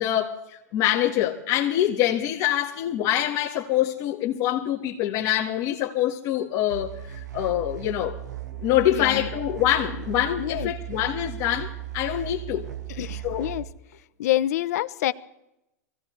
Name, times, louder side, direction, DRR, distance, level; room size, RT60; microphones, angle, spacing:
voice 1, 0.0-8.2 8.6-12.7 13.2-13.5, left 12 dB, 45° left, 1.6 m, -25 dB
sound 1, 6.7-13.6, right 14 dB, 85° right, 1.5 m, -36 dB
voice 2, 8.9-9.3 10.4-10.7 12.9-13.7 14.2-15.1, left 14 dB, 65° left, 0.8 m, -27 dB
23.5 x 17.0 x 3.3 m
hypercardioid pair, 115°, 9 cm